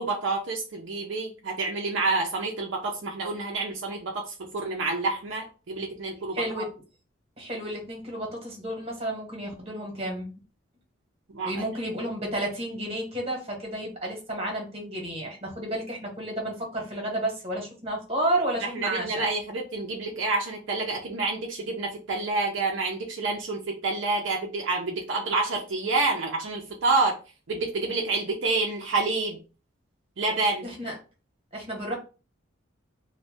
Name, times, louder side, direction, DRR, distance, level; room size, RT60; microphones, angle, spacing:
voice 1, 0.0-6.6 11.3-11.6 18.7-27.2 27.5-29.4 30.2-30.7, right 3 dB, 65° right, 0 dB, 0.5 m, -28 dB
voice 2, 6.3-6.7 7.4-10.4 11.4-19.2 30.6-30.9 31.5-32.0, right 1 dB, 30° right, 0 dB, 1.0 m, -31 dB
2.6 x 2.2 x 3.3 m, 0.33 s
head